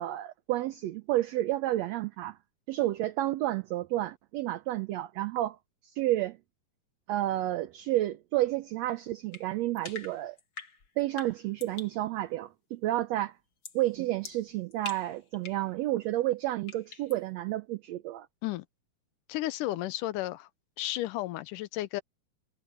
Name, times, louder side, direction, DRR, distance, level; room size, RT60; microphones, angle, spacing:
voice 1, 0.0-2.4 2.7-5.6 5.9-6.4 7.1-10.4 11.0-13.4 13.7-18.3, right 15 dB, 80° right, 1.5 m, -30 dB
sound 1, 9.3-12.0 13.6-13.9 14.2-15.7 16.7-17.2, left 5 dB, 40° left, 2.5 m, -45 dB
voice 2, 19.3-20.5 20.8-22.0, left 16 dB, 85° left, 2.3 m, -33 dB
omnidirectional pair, 3.7 m